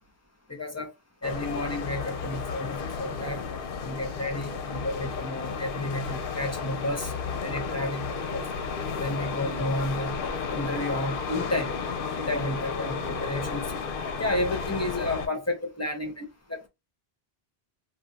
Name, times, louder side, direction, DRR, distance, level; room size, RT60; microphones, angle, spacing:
voice 1, 0.5-0.9 1.2-3.4 3.8-8.5 9.0-10.2 10.5-11.8 12.2-13.7 14.2-16.2 16.5-16.7, left 1 dB, 20° left, 0.6 m, -31 dB
sound 1, 1.2-15.3, left 5 dB, 65° left, 0.7 m, -33 dB
2.5 x 2.3 x 3.8 m
omnidirectional pair, 1.0 m